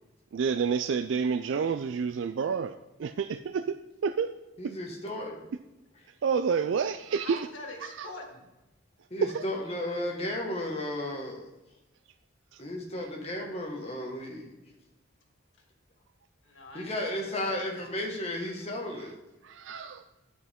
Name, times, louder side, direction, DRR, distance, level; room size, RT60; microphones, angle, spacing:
voice 1, 0.3-2.7 3.0-3.8 4.0-4.3 4.6-4.7 6.2-7.5 7.8-8.1 9.2-9.4 12.5-12.6 19.4-20.0, right 6 dB, 70° right, 10 dB, 0.4 m, -29 dB
voice 2, 4.6-5.5 9.1-11.4 12.6-14.5 16.7-19.2 19.8-19.9, left 1 dB, 30° left, 0 dB, 1.6 m, -34 dB
voice 3, 7.1-8.5 16.4-17.9 18.2-18.4, left 2 dB, 80° left, 1 dB, 1.9 m, -45 dB
9.7 x 8.1 x 3.6 m, 1.0 s
head